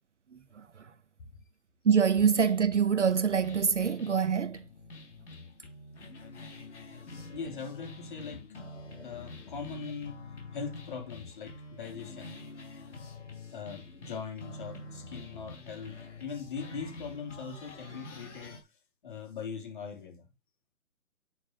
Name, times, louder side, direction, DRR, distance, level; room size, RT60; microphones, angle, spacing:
voice 1, 0.3-0.9 1.8-4.7, right 6 dB, 55° right, 0.8 m, -26 dB
sound 1, 2.1-18.6, left 3 dB, 50° left, 4.2 m, -47 dB
voice 2, 7.3-8.6 9.0-12.5 13.5-20.3, left 5 dB, 35° left, 3.4 m, -41 dB
9.3 x 9.0 x 2.9 m
hypercardioid pair, 165°, 44 cm